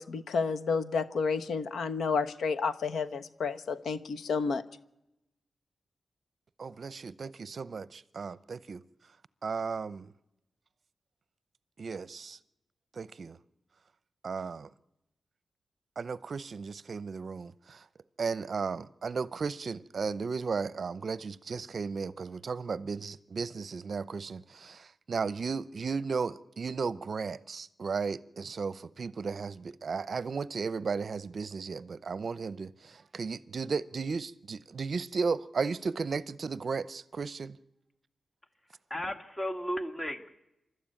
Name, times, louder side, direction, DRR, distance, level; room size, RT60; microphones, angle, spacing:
voice 1, 0.0-4.6, left 5 dB, 85° left, 1.1 m, -31 dB
voice 2, 6.6-8.8 9.4-10.1 11.8-12.4 12.9-13.4 14.2-14.7 16.0-17.8 18.2-37.6, right 5 dB, 50° right, 0.7 m, -35 dB
voice 3, 38.6-40.3, equal, 15° left, 1.7 m, -35 dB
27.5 x 13.0 x 9.0 m
wide cardioid pair, 125°, 0 cm